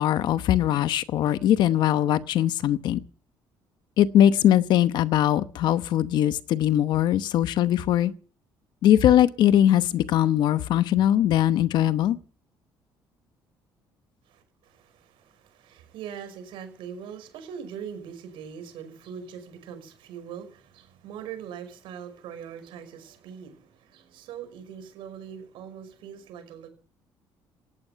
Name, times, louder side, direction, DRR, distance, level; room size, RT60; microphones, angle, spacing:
voice 1, 0.0-3.0 4.0-8.1 8.8-12.2, left 11 dB, 60° left, 0.9 m, -21 dB
voice 2, 14.3-26.7, right 8 dB, 75° right, 5.7 m, -41 dB
18.0 x 14.0 x 5.8 m
cardioid pair, 180°, 9 cm